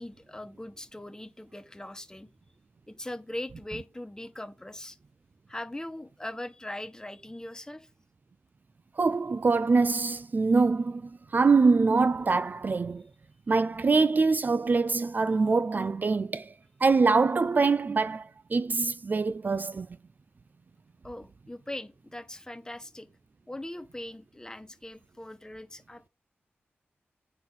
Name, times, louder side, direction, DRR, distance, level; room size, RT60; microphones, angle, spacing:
voice 1, 0.0-2.3 2.9-5.0 5.5-7.9 21.0-23.1 23.5-26.1, left 1 dB, 15° left, 1.1 m, -40 dB
voice 2, 9.0-13.0 13.5-16.5 16.8-19.9, right 4 dB, 45° right, 0.3 m, -24 dB
8.6 x 3.9 x 5.6 m
cardioid pair, 60°, 4 cm